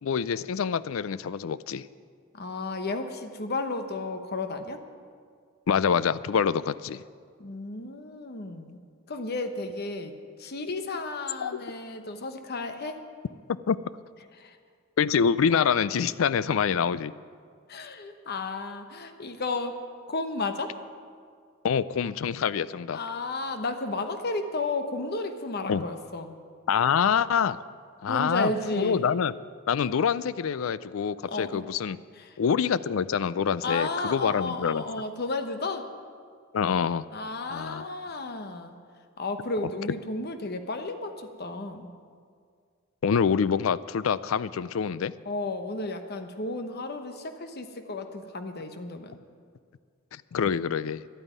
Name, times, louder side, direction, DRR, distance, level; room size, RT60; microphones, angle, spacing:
voice 1, 0.0-1.9 5.7-7.0 11.4-11.5 13.7-13.8 15.0-17.1 21.6-23.0 25.7-25.8 26.7-27.6 28.0-29.3 29.7-32.0 32.4-34.8 36.5-37.0 37.5-37.8 43.0-45.1 50.1-51.0, left 7 dB, 80° left, 17 dB, 0.4 m, -26 dB
voice 2, 2.3-4.8 7.4-8.8 9.1-13.0 14.4-14.6 17.7-19.8 20.1-20.8 22.9-26.4 28.1-29.1 31.2-31.6 32.1-32.4 33.6-35.9 37.1-38.8 39.2-41.9 45.2-49.2, left 3 dB, 50° left, 7 dB, 1.0 m, -33 dB
11.5 x 8.9 x 9.5 m, 2.1 s
head